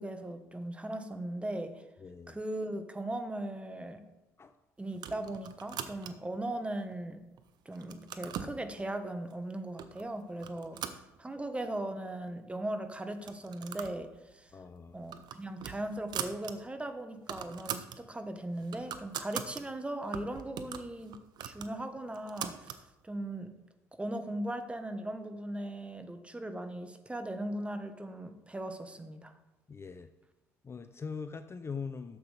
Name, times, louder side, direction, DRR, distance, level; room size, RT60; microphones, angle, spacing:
voice 1, 0.0-1.8 2.3-4.0 4.8-7.2 7.6-14.5 14.9-23.5 24.0-29.3, right 1 dB, 15° right, 8 dB, 1.3 m, -38 dB
voice 2, 2.0-2.4 4.4-4.5 14.5-15.0 29.7-30.1 30.6-32.2, left 5 dB, 30° left, 10 dB, 0.6 m, -42 dB
sound 1, 4.9-6.4 6.9-7.4 7.7-8.6 9.3-9.4 9.8-10.1 10.4-11.6 12.0-12.1 12.3-12.4 13.1-14.0 14.3-14.5 14.9-16.5 16.9-17.0 17.2-18.0 18.4-19.6 20.1-22.8, right 9 dB, 60° right, 0.8 m, -41 dB
12.0 x 7.7 x 3.4 m, 1.0 s
hypercardioid pair, 55°, 8 cm